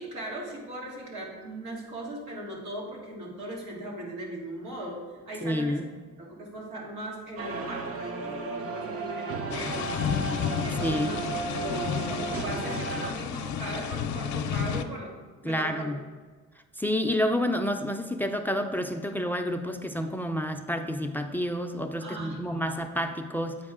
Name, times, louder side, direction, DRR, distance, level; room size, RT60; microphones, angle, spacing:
voice 1, 0.0-5.0 5.3-5.8 6.2-10.0 10.6-11.2 11.5-15.1 15.4-15.9 22.0-22.7, right 1 dB, 90° right, -3 dB, 2.0 m, -38 dB
voice 2, 5.4-5.9 10.8-11.2 15.4-16.0 16.8-23.6, equal, 5° left, 6 dB, 0.4 m, -29 dB
sound 1, 7.4-13.1, right 4 dB, 50° right, 0.7 m, -34 dB
powerful rain thunder and hailstorm, 9.5-14.8, left 7 dB, 70° left, 0.6 m, -31 dB
8.7 x 4.7 x 3.7 m, 1.4 s
cardioid pair, 90°, 30 cm